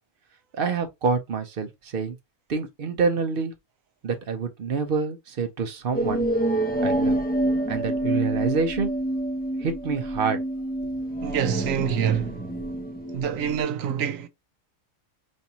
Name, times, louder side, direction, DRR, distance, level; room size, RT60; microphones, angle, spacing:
voice 1, 0.5-2.2 2.5-3.5 4.0-6.3 6.8-7.2 7.7-8.9 9.6-10.4 10.8-10.9, right 5 dB, 50° right, 0.8 m, -27 dB
sound 1, 5.9-13.6, right 1 dB, 10° left, 0.4 m, -27 dB
voice 2, 11.2-12.5 13.1-14.3, right 8 dB, 80° right, 1.0 m, -26 dB
5.3 x 2.6 x 2.7 m
omnidirectional pair, 1.4 m